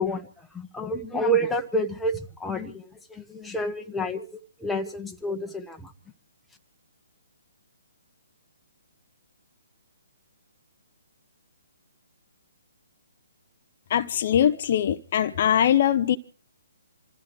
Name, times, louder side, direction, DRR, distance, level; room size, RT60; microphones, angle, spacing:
voice 1, 0.0-4.3 4.6-5.9, right 1 dB, 5° left, 1.3 m, -29 dB
voice 2, 13.9-16.2, left 10 dB, 45° left, 0.8 m, -22 dB
27.0 x 14.0 x 3.4 m
figure-of-eight pair, 135°, 0 cm